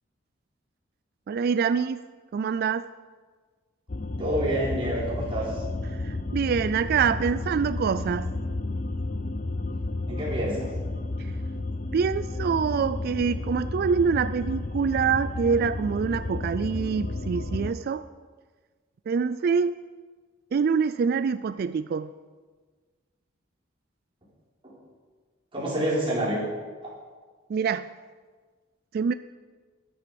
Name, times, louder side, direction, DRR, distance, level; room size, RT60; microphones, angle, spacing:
voice 1, 1.3-2.1 2.3-2.9 5.9-8.3 11.2-11.3 11.9-18.1 19.1-19.8 20.5-22.1 27.5-27.9 28.9-29.1, right 6 dB, 50° right, 13 dB, 0.3 m, -25 dB
sound 1, 3.9-17.7, left 2 dB, 40° left, 0.6 m, -32 dB
voice 2, 4.2-5.6 10.1-10.7 25.5-26.4 26.8-26.9, right 1 dB, 25° right, -7 dB, 4.9 m, -27 dB
13.5 x 10.5 x 5.2 m, 1.4 s
head